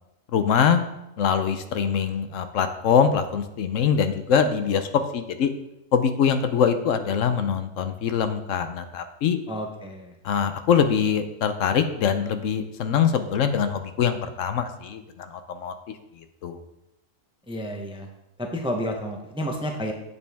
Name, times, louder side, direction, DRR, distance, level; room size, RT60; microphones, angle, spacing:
voice 1, 0.3-0.8 1.2-5.5 5.9-9.4 10.2-16.6, left 7 dB, 70° left, 9 dB, 1.0 m, -23 dB
voice 2, 9.5-10.1 17.5-18.1 18.4-19.9, equal, 5° right, 3 dB, 0.6 m, -30 dB
8.3 x 7.0 x 3.5 m, 0.88 s
omnidirectional pair, 1.4 m